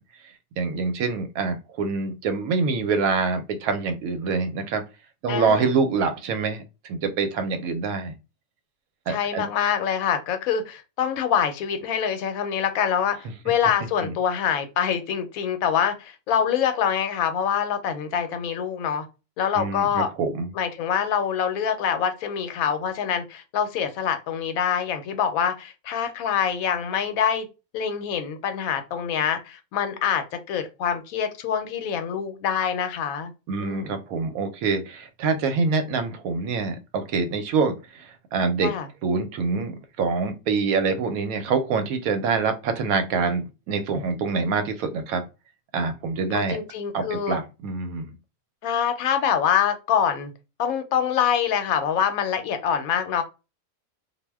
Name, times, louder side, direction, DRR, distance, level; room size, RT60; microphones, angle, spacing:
voice 1, 0.6-4.8 5.2-6.6 6.9-8.1 9.1-9.4 14.0-14.1 19.6-20.5 33.5-38.7 39.0-45.2 45.7-46.6 46.9-48.1, right 4 dB, 90° right, 1.0 m, -25 dB
voice 2, 5.3-5.7 9.1-19.1 19.4-20.1 20.5-27.5 27.7-33.3 33.6-33.9 38.6-38.9 46.3-47.4 48.6-50.3 50.6-53.2, left 8 dB, 80° left, 1.0 m, -25 dB
2.4 x 2.1 x 3.3 m
omnidirectional pair, 1.5 m